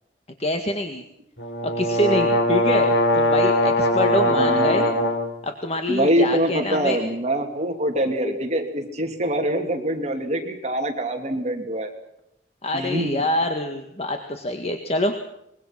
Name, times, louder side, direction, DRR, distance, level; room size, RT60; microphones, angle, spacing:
voice 1, 0.4-1.0 1.8-4.9 5.4-7.0 12.6-15.2, left 1 dB, 35° left, 5 dB, 1.8 m, -25 dB
sound 1, 1.4-5.3, equal, 75° left, 5.1 m, -20 dB
voice 2, 4.1-5.0 5.9-11.9 12.7-13.2, right 1 dB, 40° right, 4 dB, 2.9 m, -24 dB
24.5 x 22.0 x 6.0 m, 0.81 s
head